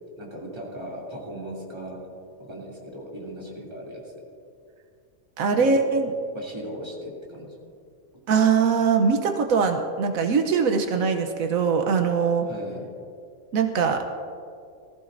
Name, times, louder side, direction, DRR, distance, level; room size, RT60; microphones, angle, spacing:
voice 1, 0.2-2.0 2.4-4.0 5.6-5.8 6.3-7.5 12.5-12.9, right 1 dB, 20° right, -5 dB, 2.8 m, -38 dB
voice 2, 5.4-6.1 8.3-12.5 13.5-14.0, right 5 dB, 85° right, 5 dB, 1.2 m, -22 dB
19.0 x 14.5 x 2.6 m, 2.3 s
omnidirectional pair, 1.4 m